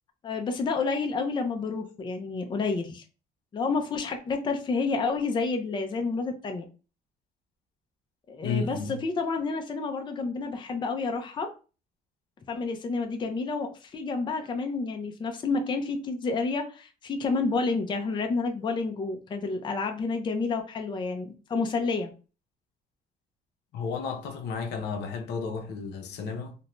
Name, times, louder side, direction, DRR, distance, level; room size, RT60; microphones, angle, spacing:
voice 1, 0.2-3.0 3.5-6.6 8.3-11.5 12.5-22.1, left 4 dB, 30° left, 0.5 m, -29 dB
voice 2, 8.4-8.9 23.7-26.6, left 5 dB, 75° left, 0.6 m, -32 dB
2.6 x 2.1 x 3.0 m
cardioid pair, 110°, 17 cm